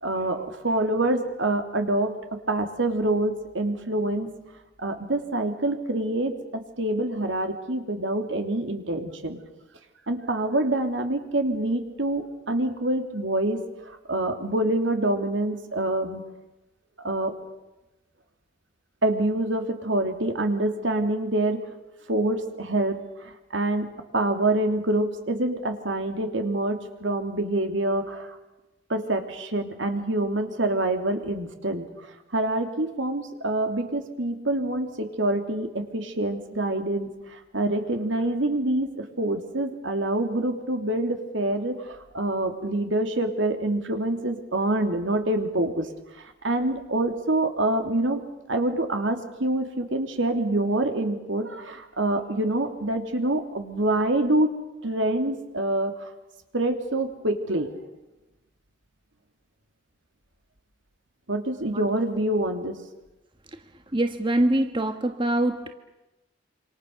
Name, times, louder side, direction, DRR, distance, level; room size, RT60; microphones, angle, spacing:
voice 1, 0.0-2.1 2.5-4.3 4.8-9.4 10.1-13.6 13.9-16.2 17.0-17.3 19.0-21.6 22.1-23.9 24.1-28.4 28.9-31.8 32.3-45.9 46.4-48.2 48.5-54.5 54.8-56.1 56.5-57.7 61.3-62.8, right 1 dB, 75° right, 5 dB, 3.3 m, -26 dB
voice 2, 63.9-65.7, right 1 dB, 25° right, 7 dB, 1.4 m, -24 dB
28.0 x 26.5 x 6.9 m, 1.0 s
head